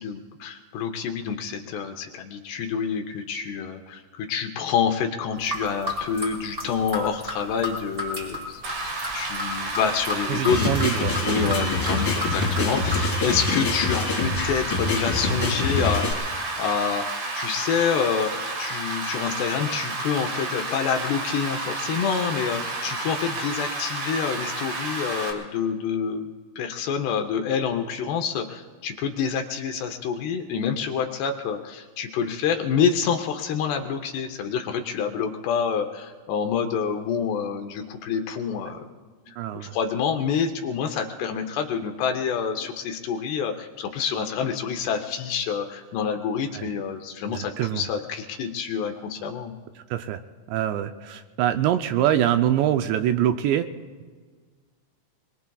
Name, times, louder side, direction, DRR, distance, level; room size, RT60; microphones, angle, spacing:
voice 1, 0.0-10.7 11.3-38.8 39.3-49.5, left 7 dB, 75° left, 4 dB, 2.7 m, -27 dB
sound 1, 5.4-13.0, left 2 dB, 10° right, 5.2 m, -33 dB
Rain, 8.6-25.3, right 2 dB, 60° right, 4.1 m, -31 dB
voice 2, 10.3-11.7 39.4-39.8 46.5-46.7 47.3-47.9 49.9-50.2 50.5-53.7, right 11 dB, 80° right, 8 dB, 2.6 m, -24 dB
sound 2, 10.5-16.1, left 3 dB, 45° left, 1.8 m, -26 dB
28.5 x 21.5 x 2.3 m, 1.5 s
omnidirectional pair, 5.4 m